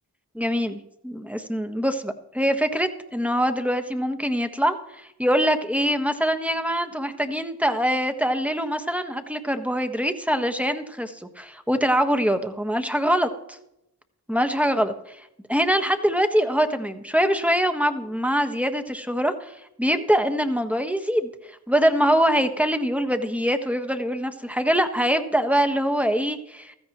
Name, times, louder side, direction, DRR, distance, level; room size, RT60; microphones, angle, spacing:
voice 1, 0.3-13.6 14.3-15.2 15.5-19.5 19.8-21.3 21.7-26.7, equal, 5° right, 6 dB, 1.4 m, -24 dB
16.0 x 13.5 x 3.1 m, 0.83 s
cardioid pair, 40°, 40 cm